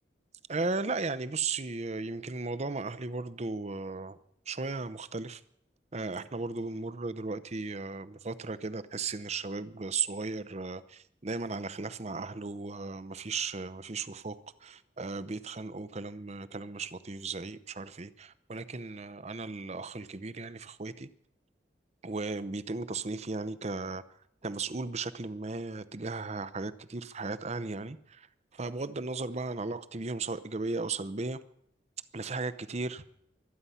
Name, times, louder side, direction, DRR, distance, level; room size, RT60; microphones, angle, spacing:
voice 1, 0.5-4.2 4.5-5.4 5.9-21.1 22.0-24.0 24.4-28.3 28.5-31.4 32.1-33.0, right 3 dB, 35° right, 0.7 m, -36 dB
24.5 x 9.6 x 5.7 m
head